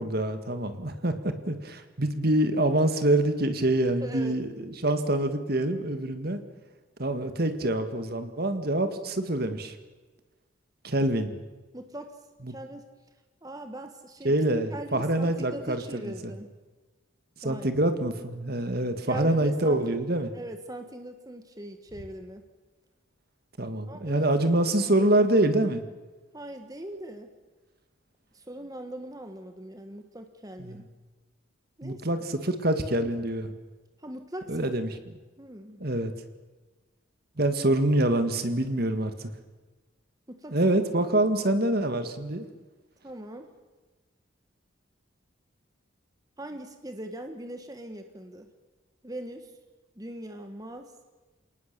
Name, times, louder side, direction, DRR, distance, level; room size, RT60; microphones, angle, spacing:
voice 1, 0.0-6.4 7.0-9.7 10.8-11.4 12.5-12.6 14.2-16.1 17.4-20.3 23.6-25.9 30.6-30.8 31.8-33.5 34.5-34.9 35.8-36.1 37.4-39.3 40.5-42.5, right 1 dB, 50° right, 8 dB, 1.9 m, -26 dB
voice 2, 4.0-4.4 11.7-12.2 12.5-12.9 13.4-14.3 14.7-16.5 17.4-17.7 19.1-19.8 20.3-22.4 23.9-24.3 25.0-25.1 26.3-27.3 28.3-30.8 31.8-32.3 34.0-34.6 35.4-35.8 40.3-40.6 41.2-41.3 43.0-43.5 46.4-48.5 49.0-49.5 50.0-51.0, right 1 dB, 20° right, 6 dB, 1.5 m, -40 dB
28.5 x 19.0 x 6.9 m, 1.2 s
head